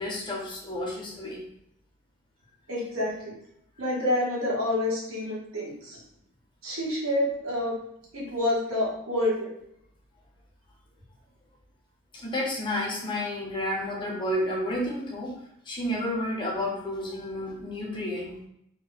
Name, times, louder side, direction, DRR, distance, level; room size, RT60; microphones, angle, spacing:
voice 1, 0.0-1.5 12.1-15.3 15.7-18.5, left 1 dB, 20° left, -1 dB, 0.6 m, -31 dB
voice 2, 2.7-3.3 3.8-6.0 6.6-7.8 8.1-9.5, left 1 dB, 70° right, -4 dB, 1.2 m, -28 dB
2.8 x 2.2 x 3.9 m, 0.73 s
head